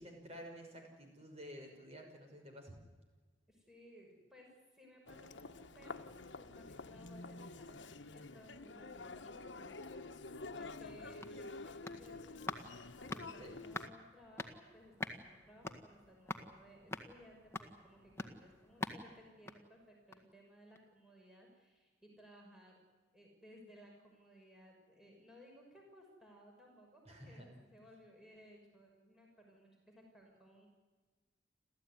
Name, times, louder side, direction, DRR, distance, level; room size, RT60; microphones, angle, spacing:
voice 1, 0.0-2.8 13.4-13.6 27.1-27.5, equal, 35° right, 3 dB, 5.9 m, -51 dB
voice 2, 3.5-22.8 23.1-30.7, equal, 5° right, -1 dB, 6.0 m, -61 dB
Human voice, 5.1-13.9, left 3 dB, 80° left, 1.2 m, -49 dB
sound 1, 11.2-20.4 20.7-20.8, left 2 dB, 15° left, 1.8 m, -47 dB
29.5 x 14.5 x 9.7 m, 1.4 s
head